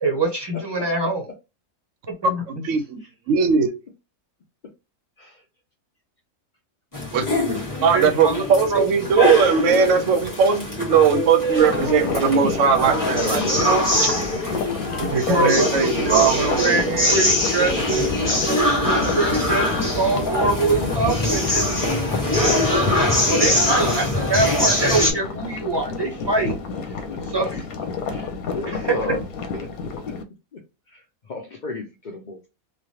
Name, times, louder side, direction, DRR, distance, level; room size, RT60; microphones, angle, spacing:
voice 1, 0.0-1.2 2.2-2.6 7.8-8.9 9.2-9.3 15.3-16.3 16.6-21.7 22.3-22.7 23.3-26.5 27.3-27.7 28.7-29.2, right 3 dB, 25° right, 0.6 m, -24 dB
voice 2, 0.5-1.1 3.4-3.5 5.2-5.4 12.0-13.8 21.4-21.5 27.1-27.2 28.1-29.2 29.5-29.7 30.1-30.2 30.5-30.6 30.9-31.0 31.3-32.5, left 3 dB, 60° left, 0.5 m, -33 dB
voice 3, 2.5-3.7 7.1-7.2 7.8-14.1 15.0-17.2, right 6 dB, 70° right, 0.9 m, -20 dB
sound 1, 6.9-25.1, left 1 dB, 15° left, 1.1 m, -23 dB
sound 2, 11.6-30.2, left 4 dB, 85° left, 1.1 m, -31 dB
3.1 x 2.4 x 2.7 m
omnidirectional pair, 1.5 m